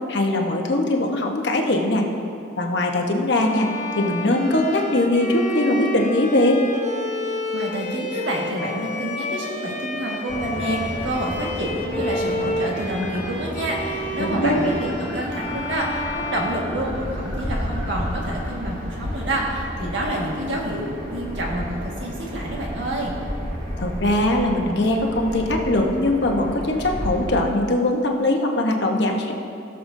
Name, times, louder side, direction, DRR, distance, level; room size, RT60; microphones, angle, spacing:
voice 1, 0.1-2.1 2.6-3.7 4.0-6.6 14.2-14.7 23.8-29.3, left 1 dB, 65° left, 1 dB, 1.0 m, -21 dB
Bowed string instrument, 3.3-17.4, left 1 dB, 40° left, 0.8 m, -31 dB
voice 2, 7.5-23.1, right 1 dB, 75° right, -2 dB, 1.7 m, -28 dB
sound 1, 10.3-27.3, equal, 45° right, 1.9 m, -32 dB
sound 2, 13.0-13.7 13.9-18.5, left 2 dB, 15° left, 1.0 m, -41 dB
17.5 x 6.8 x 2.7 m, 2.7 s
head